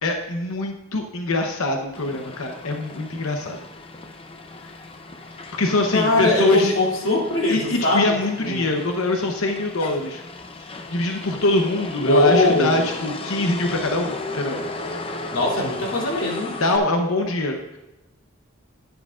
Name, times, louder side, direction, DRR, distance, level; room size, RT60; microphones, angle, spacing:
voice 1, 0.0-3.6 5.6-6.7 7.5-10.2 10.6-14.6 16.6-17.8, left 2 dB, 85° left, 3 dB, 0.9 m, -23 dB
Motor vehicle (road), 1.9-16.8, left 2 dB, 25° left, 0.6 m, -36 dB
voice 2, 5.9-8.7 12.0-12.9 15.3-16.6, left 1 dB, 65° left, -3 dB, 2.8 m, -21 dB
11.0 x 9.8 x 2.5 m, 0.99 s
head